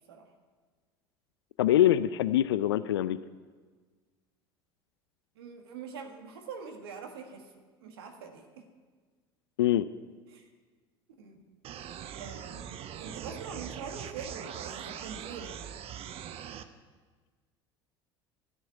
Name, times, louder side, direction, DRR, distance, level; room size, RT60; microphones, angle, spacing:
voice 1, 1.6-3.2 9.6-9.9, left 12 dB, 85° left, 15 dB, 0.4 m, -24 dB
voice 2, 5.3-7.5 7.8-8.7 10.3-10.5 11.2-11.4 11.8-15.7, right 5 dB, 80° right, 4 dB, 1.6 m, -44 dB
sound 1, 11.6-16.6, right 9 dB, 50° right, 0.9 m, -41 dB
13.5 x 6.9 x 9.2 m, 1.5 s
hypercardioid pair, 75°, 13 cm